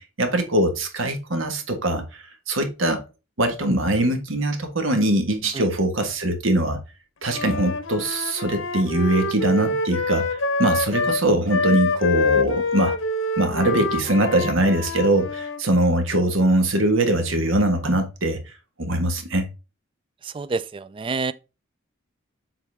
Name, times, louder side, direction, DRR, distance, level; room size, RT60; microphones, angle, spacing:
voice 1, 0.0-3.0 3.4-6.8 7.2-12.9 13.4-18.4 18.8-19.5, right 1 dB, 85° right, 1.5 m, -22 dB
Wind instrument woodwind instrument, 7.3-15.6, left 3 dB, 80° left, 0.9 m, -26 dB
voice 2, 20.3-21.3, right 4 dB, 25° right, 0.3 m, -27 dB
7.4 x 3.9 x 3.5 m
head